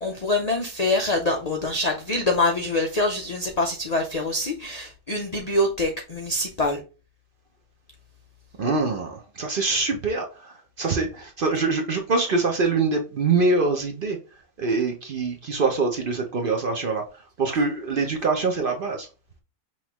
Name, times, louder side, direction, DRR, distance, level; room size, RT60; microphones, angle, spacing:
voice 1, 0.0-6.8, left 2 dB, 60° left, 0.4 m, -25 dB
voice 2, 8.6-14.2 14.6-17.0 17.4-19.1, right 3 dB, 50° right, 0.7 m, -24 dB
5.6 x 3.1 x 2.9 m
omnidirectional pair, 1.5 m